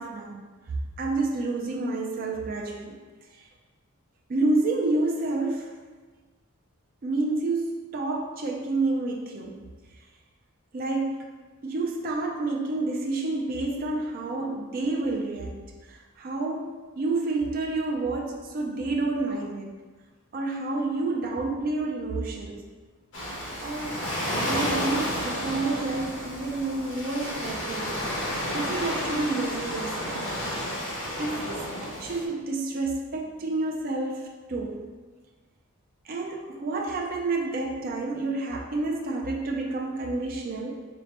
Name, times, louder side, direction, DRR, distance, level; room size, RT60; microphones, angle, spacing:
voice 1, 0.0-3.0 3.3-3.5 4.3-5.7 7.0-9.6 10.7-11.2 11.6-19.8 20.3-22.7 23.6-28.0 28.5-30.2 31.2-34.8 36.1-40.7, right 2 dB, 40° right, 0 dB, 0.4 m, -29 dB
Waves surf, 23.1-32.2, equal, 55° left, 1.1 m, -31 dB
3.9 x 3.2 x 2.9 m, 1.4 s
head